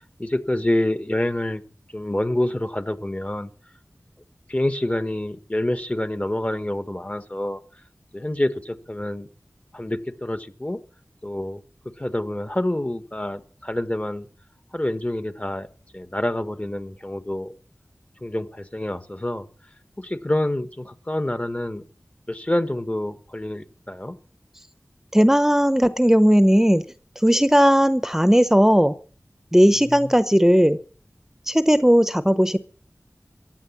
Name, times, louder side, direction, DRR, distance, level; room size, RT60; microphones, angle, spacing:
voice 1, 0.2-1.6 1.9-3.5 4.5-7.6 8.1-9.3 9.7-10.8 11.2-11.6 12.0-14.3 14.7-15.7 15.9-17.5 18.2-19.5 20.0-21.8 22.3-24.2 29.9-30.1, left 1 dB, 25° left, 11 dB, 1.2 m, -27 dB
voice 2, 25.1-26.8 27.2-28.9 29.5-30.8 31.5-32.6, equal, 5° right, 12 dB, 0.8 m, -17 dB
15.0 x 9.2 x 7.2 m, 0.42 s
wide cardioid pair, 50°, 5 cm